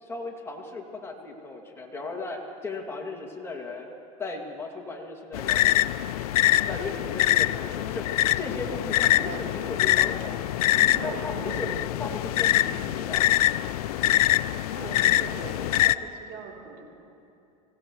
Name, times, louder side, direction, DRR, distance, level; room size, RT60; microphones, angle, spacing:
voice 1, 0.0-3.9 4.2-5.7 6.7-10.4 11.0-11.7 12.0-13.3, left 3 dB, 15° left, 0 dB, 2.3 m, -36 dB
sound 1, 5.3-15.9, left 15 dB, 85° left, 0.4 m, -24 dB
voice 2, 9.0-9.8 10.7-11.8 12.3-12.9 14.7-16.8, right 5 dB, 55° right, -2 dB, 3.5 m, -40 dB
26.0 x 16.0 x 3.2 m, 2.7 s
supercardioid pair, 110°, 19 cm